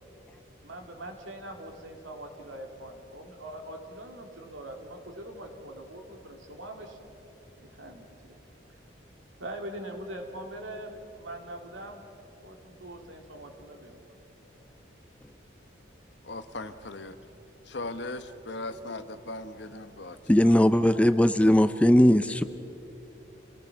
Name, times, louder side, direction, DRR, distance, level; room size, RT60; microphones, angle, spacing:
voice 1, 0.6-7.0 7.6-8.4 9.4-12.0 12.4-14.0, right 1 dB, 85° right, 2 dB, 2.7 m, -42 dB
voice 2, 16.3-17.2 17.7-20.2, left 2 dB, 65° left, 10 dB, 1.0 m, -38 dB
voice 3, 20.3-22.4, equal, 5° left, 11 dB, 0.4 m, -19 dB
28.5 x 18.5 x 5.9 m, 3.0 s
head